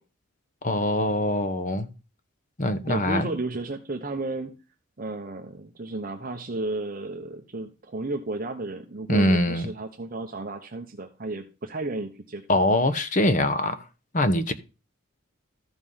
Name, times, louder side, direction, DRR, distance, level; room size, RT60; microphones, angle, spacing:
voice 1, 0.6-1.9 2.6-3.3 9.1-9.7 12.5-13.8 14.1-14.5, left 1 dB, 35° left, 0.9 m, -23 dB
voice 2, 2.9-4.5 5.0-12.4, right 2 dB, 40° right, 0.8 m, -33 dB
13.5 x 5.4 x 5.6 m
head